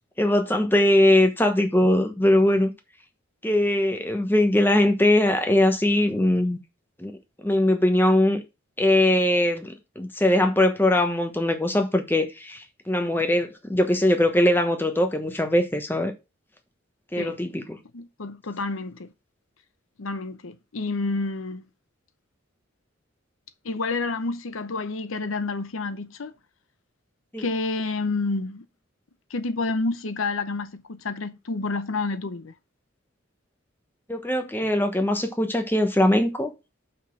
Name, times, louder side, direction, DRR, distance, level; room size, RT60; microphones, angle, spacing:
voice 1, 0.2-2.7 3.4-6.6 7.0-7.1 7.4-8.4 8.8-16.1 17.1-17.8 27.3-27.4 34.1-36.5, left 1 dB, 10° left, 1.1 m, -21 dB
voice 2, 17.9-19.1 20.0-21.6 23.6-26.3 27.4-28.7 29.3-32.5 34.6-34.7, left 3 dB, 85° left, 0.8 m, -29 dB
5.8 x 5.5 x 6.0 m
head